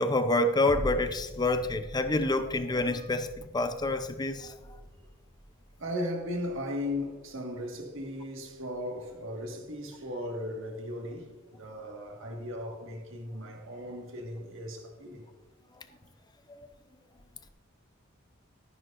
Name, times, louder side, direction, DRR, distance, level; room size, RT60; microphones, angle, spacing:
voice 1, 0.0-4.6 16.5-16.7, left 2 dB, 20° left, 0.6 m, -28 dB
sound 1, 0.7-9.2 9.7-9.8, equal, ahead, 1.6 m, -44 dB
voice 2, 5.8-15.2, left 1 dB, 60° right, 1.8 m, -37 dB
12.5 x 11.0 x 2.6 m
head